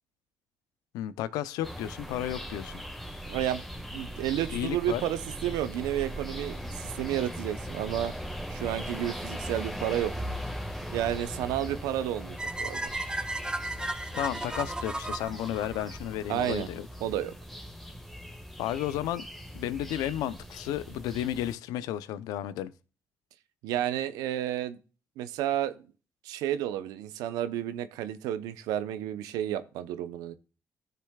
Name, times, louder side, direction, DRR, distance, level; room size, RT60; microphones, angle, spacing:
voice 1, 0.9-2.8 4.5-5.0 14.1-16.9 18.6-19.2 19.5-22.7, left 12 dB, 90° left, 0.6 m, -33 dB
sound 1, 1.6-21.5, equal, ahead, 1.6 m, -39 dB
voice 2, 3.3-3.6 3.9-8.1 8.5-10.1 10.9-12.9 16.3-16.7 17.0-17.3 23.6-24.8 25.2-25.8 26.2-30.3, right 12 dB, 90° right, 0.7 m, -31 dB
sound 2, 12.4-16.5, right 2 dB, 15° right, 1.0 m, -35 dB
13.5 x 6.8 x 2.3 m
supercardioid pair, 65°, 6 cm